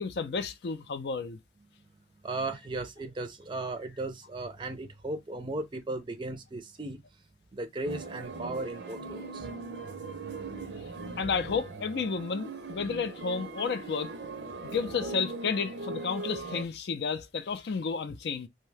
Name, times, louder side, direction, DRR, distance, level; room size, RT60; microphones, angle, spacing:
voice 1, 0.0-1.4 11.2-14.1 14.6-18.5, left 5 dB, 70° left, 0.4 m, -32 dB
voice 2, 2.2-7.0 7.5-9.5, right 2 dB, 25° right, 0.4 m, -36 dB
sound 1, 7.8-16.6, right 3 dB, 80° right, 0.5 m, -40 dB
2.7 x 2.1 x 3.1 m
head